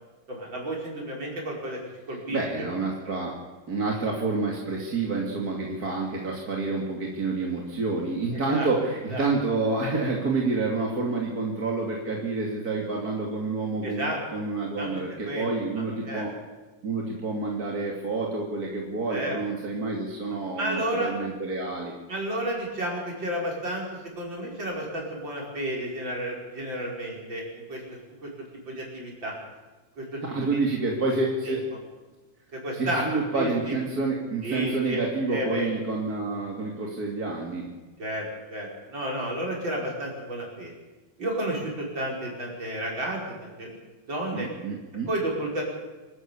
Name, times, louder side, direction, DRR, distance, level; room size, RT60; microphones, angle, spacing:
voice 1, 0.3-1.8 2.1-2.4 8.5-8.7 9.1-9.3 13.8-14.4 14.8-14.9 15.3-15.5 15.8-16.2 19.1-19.4 20.6-21.1 22.1-28.3 28.7-29.3 30.0-30.6 31.5-31.6 32.5-33.1 33.4-33.8 34.4-35.0 35.3-35.7 38.0-40.7 41.2-43.7 44.1-44.5 45.1-45.6, right 1 dB, 65° right, -2 dB, 6.2 m, -31 dB
voice 2, 2.3-3.4 3.7-16.3 16.8-21.9 30.2-31.7 32.7-37.7 44.3-45.1, right 3 dB, 45° right, -2 dB, 3.1 m, -28 dB
26.5 x 13.0 x 8.6 m, 1.2 s
omnidirectional pair, 2.2 m